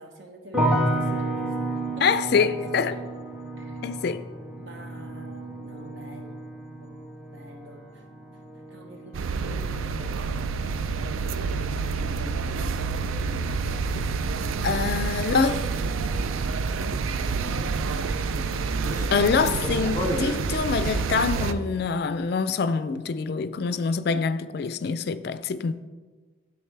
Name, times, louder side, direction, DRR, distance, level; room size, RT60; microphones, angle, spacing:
voice 1, 0.0-3.1 3.6-3.8 4.6-6.4 6.8-7.0 7.3-8.1 8.3-14.6 15.2-18.7, right 1 dB, 65° right, 1.0 m, -46 dB
sound 1, 0.5-11.6 11.9-12.6, right 1 dB, 5° right, 0.6 m, -32 dB
voice 2, 2.0-2.9 3.8-4.2 14.0-14.1 14.6-15.6 19.1-25.7, left 5 dB, 50° left, 0.3 m, -25 dB
sound 2, 9.1-21.5, right 4 dB, 85° right, 0.4 m, -28 dB
sound 3, 12.9-21.9, left 1 dB, 15° left, 1.4 m, -38 dB
9.8 x 7.9 x 3.3 m
head